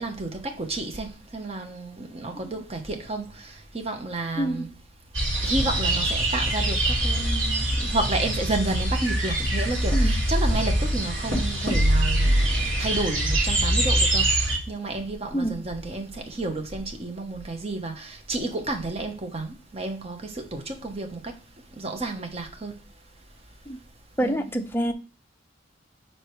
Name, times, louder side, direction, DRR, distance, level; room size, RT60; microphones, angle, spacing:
voice 1, 0.0-4.7 5.4-12.4 12.8-21.4 21.7-22.8 24.2-24.4, right 2 dB, 30° right, 1.0 m, -31 dB
sound 1, 5.1-14.6, right 1 dB, 75° right, 3.1 m, -23 dB
voice 2, 24.2-24.9, right 1 dB, 10° left, 0.5 m, -26 dB
5.0 x 4.5 x 4.6 m
head